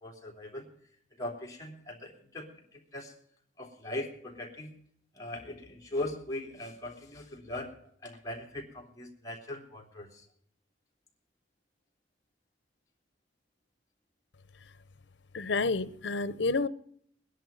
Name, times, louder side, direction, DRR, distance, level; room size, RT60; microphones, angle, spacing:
voice 1, 0.0-0.7 1.2-3.1 3.6-4.7 5.1-7.7 8.0-10.3, left 1 dB, 20° left, 0 dB, 3.3 m, -40 dB
voice 2, 15.3-16.7, left 3 dB, 80° left, 17 dB, 0.7 m, -29 dB
20.5 x 10.5 x 5.4 m, 0.67 s
head